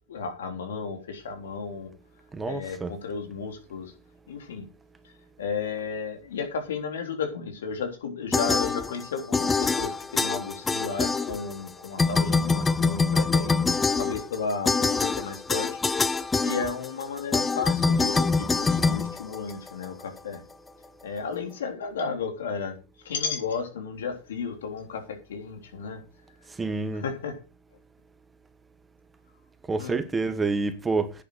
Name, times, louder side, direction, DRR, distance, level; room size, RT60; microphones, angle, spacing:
voice 1, 0.1-1.9 2.5-3.9 4.3-4.7 5.0-5.1 5.4-13.7 14.0-15.7 16.4-20.4 21.0-22.8 23.0-26.0 27.0-27.3 29.8-30.0, left 5 dB, 90° left, 3.5 m, -33 dB
voice 2, 2.3-2.9 26.6-27.1 29.7-31.1, right 3 dB, 15° right, 1.3 m, -28 dB
sound 1, 8.3-9.1 9.3-11.7 12.0-19.8, left 4 dB, 10° left, 0.6 m, -25 dB
10.0 x 7.8 x 6.4 m
supercardioid pair, 130°, 0 cm